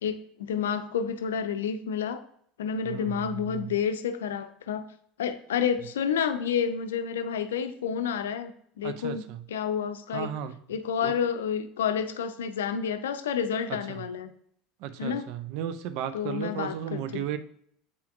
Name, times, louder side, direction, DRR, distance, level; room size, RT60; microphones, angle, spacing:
voice 1, 0.0-2.2 2.6-4.9 5.2-9.2 9.5-10.3 10.7-14.3 15.0-15.3 16.1-17.2, left 7 dB, 65° left, 10 dB, 0.5 m, -29 dB
voice 2, 2.8-3.7 8.8-9.4 10.1-10.6 11.0-11.1 13.9-14.0 14.8-17.4, right 10 dB, 55° right, 11 dB, 0.6 m, -35 dB
8.0 x 5.6 x 2.6 m, 0.65 s
figure-of-eight pair, 70°, 0 cm